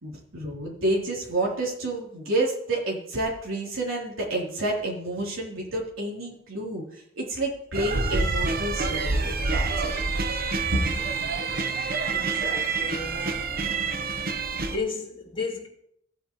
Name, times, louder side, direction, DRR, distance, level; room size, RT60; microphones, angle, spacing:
voice 1, 0.0-9.9 10.7-10.8, right 1 dB, 85° right, 3.5 m, -29 dB
sound 1, 7.7-14.8, right 4 dB, 45° right, 1.0 m, -27 dB
voice 2, 12.1-13.5 14.2-15.7, left 4 dB, 25° left, 2.9 m, -35 dB
17.5 x 8.6 x 3.1 m
head